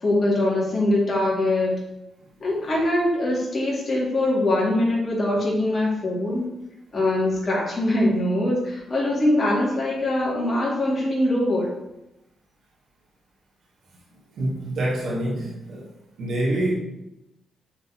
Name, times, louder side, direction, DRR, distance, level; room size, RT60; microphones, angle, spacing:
voice 1, 0.0-1.8 2.4-6.5 6.9-11.7, left 1 dB, 45° left, -5 dB, 2.3 m, -22 dB
voice 2, 14.3-15.9 16.2-16.7, right 1 dB, 70° right, -4 dB, 1.5 m, -26 dB
8.5 x 4.0 x 3.0 m, 0.91 s
supercardioid pair, 60°, 0 cm